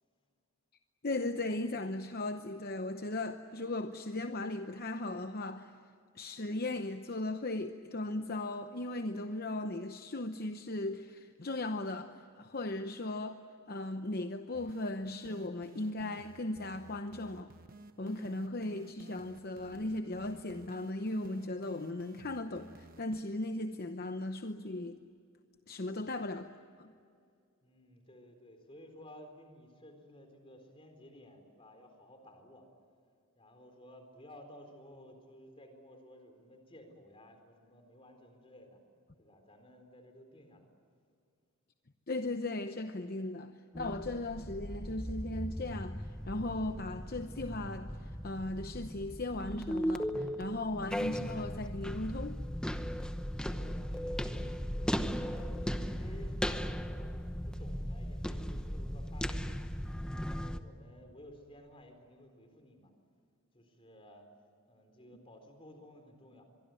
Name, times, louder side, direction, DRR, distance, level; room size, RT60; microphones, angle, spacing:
voice 1, 1.0-5.7 6.1-12.1 12.4-13.4 13.7-17.5 18.0-25.0 25.7-26.5 26.8-26.9 42.1-52.4, left 2 dB, 45° left, 0.9 m, -37 dB
sound 1, 14.5-23.2, right 2 dB, 40° right, 1.1 m, -54 dB
voice 2, 27.6-32.7 33.4-38.8 39.2-40.7 53.4-59.7 60.2-62.9 63.5-64.3 64.7-66.4, left 1 dB, 25° left, 4.1 m, -55 dB
sound 2, 43.7-60.6, equal, 5° left, 0.9 m, -37 dB
24.5 x 23.5 x 9.1 m
head